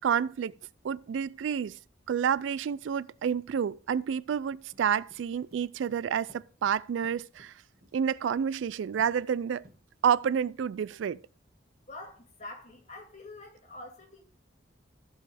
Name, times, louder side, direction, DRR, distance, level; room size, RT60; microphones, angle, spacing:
voice 1, 0.0-0.5 0.8-1.8 2.1-7.5 7.9-9.6 10.0-11.2, right 7 dB, 80° right, 0.3 m, -29 dB
sound 1, 4.7-8.0 8.3-8.7 9.0-9.3 9.6-10.2, equal, 50° right, 1.5 m, -58 dB
voice 2, 11.9-14.2, left 2 dB, 35° left, 2.0 m, -46 dB
15.0 x 5.4 x 3.4 m
head